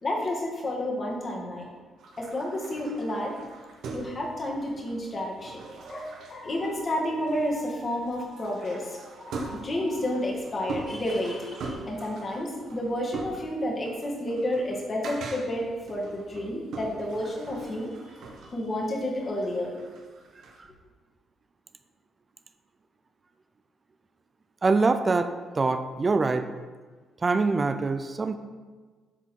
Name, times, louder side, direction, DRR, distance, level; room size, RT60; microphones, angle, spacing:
voice 1, 0.0-1.7 2.2-3.4 3.9-5.6 5.9-18.0 18.4-19.8, left 1 dB, 35° left, -2 dB, 2.1 m, -30 dB
sound 1, 2.0-20.6, right 3 dB, 75° right, 1.4 m, -42 dB
voice 2, 24.6-26.5 27.2-28.4, right 3 dB, 30° right, 9 dB, 0.5 m, -24 dB
11.5 x 4.1 x 4.6 m, 1.4 s
cardioid pair, 90°, 0 cm